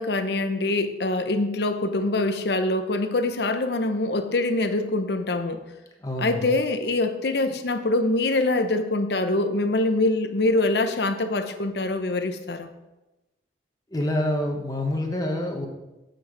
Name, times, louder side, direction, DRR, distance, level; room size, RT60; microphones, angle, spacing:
voice 1, 0.0-5.6 6.2-12.7, left 2 dB, 70° left, 9 dB, 0.8 m, -24 dB
voice 2, 6.0-6.5 13.9-15.7, left 1 dB, 20° left, 2 dB, 1.1 m, -27 dB
7.8 x 7.1 x 5.1 m, 1.0 s
head